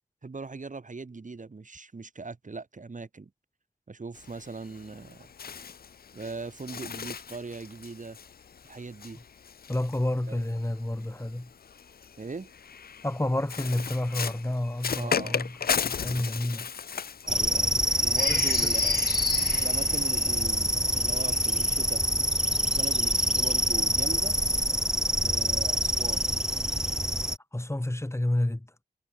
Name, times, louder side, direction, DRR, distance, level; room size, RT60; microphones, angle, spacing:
voice 1, 0.2-3.3 3.9-5.3 6.1-8.2 8.6-9.2 10.3-10.4 12.2-12.5 15.0-15.4 17.2-19.0 19.6-22.1 22.6-24.4 25.2-26.3, right 4 dB, 55° right, 6.9 m, -40 dB
Bird, 4.2-10.7 11.6-20.4, left 6 dB, 75° left, 0.9 m, -35 dB
voice 2, 9.7-11.5 13.0-16.7 18.3-18.7 27.5-28.7, left 1 dB, 15° left, 5.0 m, -30 dB
sound 1, 17.3-27.4, equal, 5° right, 2.3 m, -26 dB
cardioid pair, 55°, 16 cm